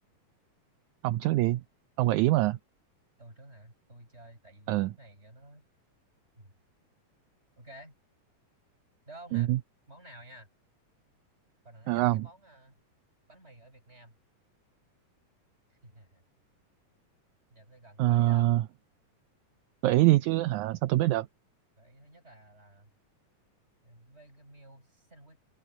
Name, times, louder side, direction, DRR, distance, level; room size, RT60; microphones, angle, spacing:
voice 1, 1.0-1.6 2.0-2.6 4.7-4.9 9.3-9.6 11.9-12.2 18.0-18.6 19.8-21.3, right 16 dB, 75° right, 1.9 m, -24 dB
voice 2, 3.2-5.7 6.4-6.5 7.6-7.9 9.1-9.5 9.9-10.5 11.6-12.8 13.3-14.2 15.7-16.3 17.5-18.6 21.8-22.9 23.8-25.4, right 1 dB, 20° right, 8.1 m, -52 dB
open air
omnidirectional pair, 3.8 m